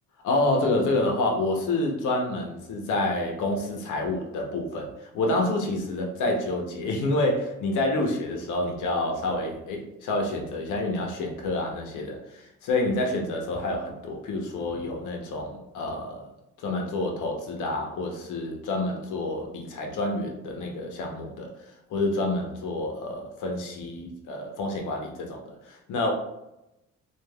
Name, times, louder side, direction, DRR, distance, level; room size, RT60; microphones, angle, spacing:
voice 1, 0.2-16.3 16.6-26.1, left 2 dB, 80° left, 1 dB, 0.8 m, -28 dB
3.2 x 2.4 x 2.3 m, 0.89 s
cardioid pair, 90°, 30 cm